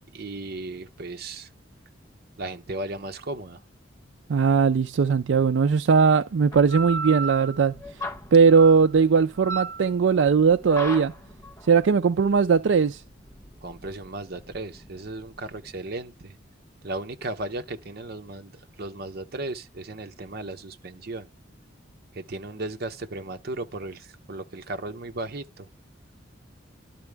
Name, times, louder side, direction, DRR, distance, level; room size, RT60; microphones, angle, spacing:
voice 1, 0.1-1.5 2.4-3.6 13.6-16.4 16.8-18.5 18.8-21.3 22.1-25.7, right 2 dB, 50° right, 0.8 m, -35 dB
voice 2, 4.3-7.8 8.3-11.1 11.7-13.0, right 5 dB, 70° right, 0.4 m, -19 dB
sound 1, 6.5-15.7, right 2 dB, 15° left, 1.1 m, -36 dB
12.0 x 4.2 x 3.4 m
head